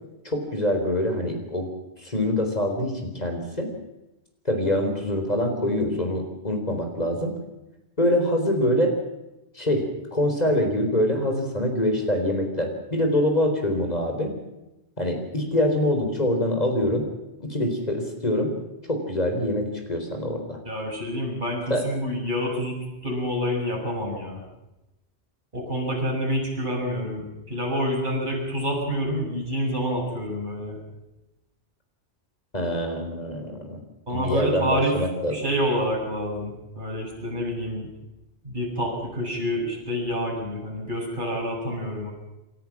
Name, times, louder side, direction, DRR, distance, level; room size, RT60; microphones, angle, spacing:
voice 1, 0.2-1.7 2.0-3.7 4.4-7.3 8.0-8.9 9.6-9.9 10.1-14.3 15.0-17.0 17.4-18.6 18.9-20.6 21.7-21.8 32.5-33.8 34.1-35.4, left 1 dB, 35° left, 4 dB, 4.2 m, -24 dB
voice 2, 20.6-24.4 25.5-30.8 34.1-35.0 35.3-37.9 38.4-42.1, equal, 45° right, -2 dB, 7.6 m, -28 dB
28.5 x 13.5 x 7.4 m, 0.95 s
omnidirectional pair, 1.2 m